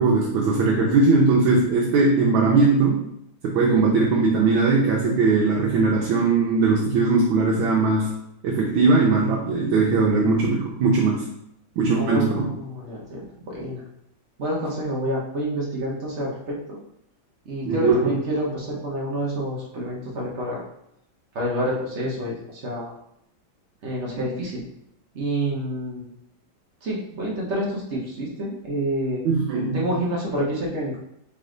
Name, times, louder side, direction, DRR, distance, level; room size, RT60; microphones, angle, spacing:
voice 1, 0.0-3.0 3.4-8.1 8.4-11.3 11.8-12.5 17.6-18.2 29.2-29.9, right 3 dB, 80° right, -2 dB, 1.4 m, -20 dB
voice 2, 12.0-13.8 14.4-16.8 17.4-20.6 21.3-22.9 23.8-24.6 25.1-26.1 26.8-29.2 29.7-31.0, equal, 55° right, -3 dB, 0.8 m, -28 dB
4.1 x 3.2 x 3.7 m, 0.77 s
omnidirectional pair, 2.2 m